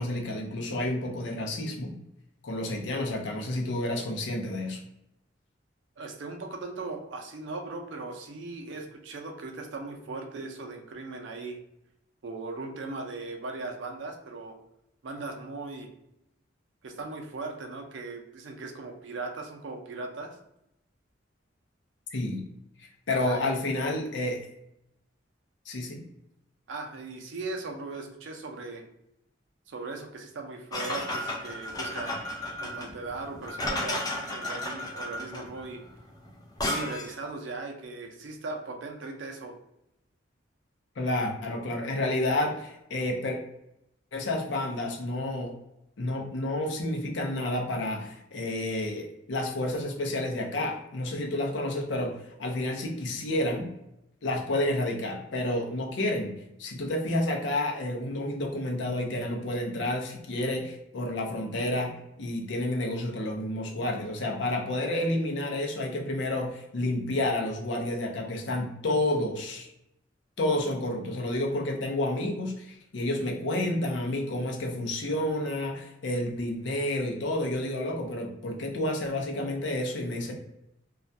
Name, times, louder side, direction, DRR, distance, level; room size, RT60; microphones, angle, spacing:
voice 1, 0.0-1.9 2.4-4.8 22.1-22.4 22.8-24.4 25.7-26.0 41.0-43.4 44.1-45.5 46.0-53.7 54.2-56.3 56.6-69.7 70.4-80.3, left 1 dB, 65° left, 1 dB, 0.6 m, -30 dB
voice 2, 6.0-11.6 12.2-14.6 15.0-15.9 16.8-20.4 23.1-23.5 26.7-28.8 29.7-32.2 32.6-35.8 36.6-39.5, right 3 dB, 70° right, 3 dB, 0.5 m, -38 dB
sound 1, 30.7-37.2, left 1 dB, 20° left, 0.4 m, -33 dB
2.3 x 2.1 x 2.6 m, 0.83 s
head